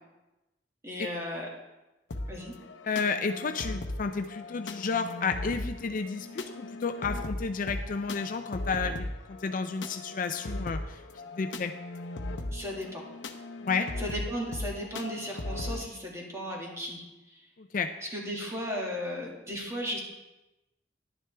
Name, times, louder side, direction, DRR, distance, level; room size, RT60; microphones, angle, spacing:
voice 1, 0.8-1.5 2.3-2.5 12.5-13.0 14.0-17.4 18.0-20.0, equal, 15° right, -2 dB, 2.1 m, -35 dB
sound 1, 2.1-15.8, left 2 dB, 75° left, 0.8 m, -38 dB
voice 2, 2.8-11.0 11.4-11.7 13.6-13.9 17.6-17.9, left 5 dB, 45° left, 8 dB, 0.4 m, -31 dB
11.0 x 9.7 x 3.4 m, 1.0 s
head